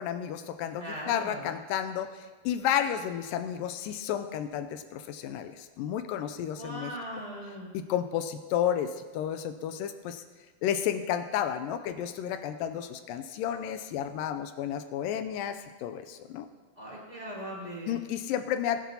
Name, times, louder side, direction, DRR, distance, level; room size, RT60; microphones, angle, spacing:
voice 1, 0.0-6.9 7.7-10.2 10.6-16.5 17.9-18.8, left 9 dB, 85° left, 9 dB, 2.2 m, -32 dB
voice 2, 0.8-1.5 6.5-7.7 16.8-18.0, equal, 10° right, -6 dB, 3.5 m, -39 dB
20.0 x 10.0 x 2.8 m, 1.5 s
omnidirectional pair, 3.9 m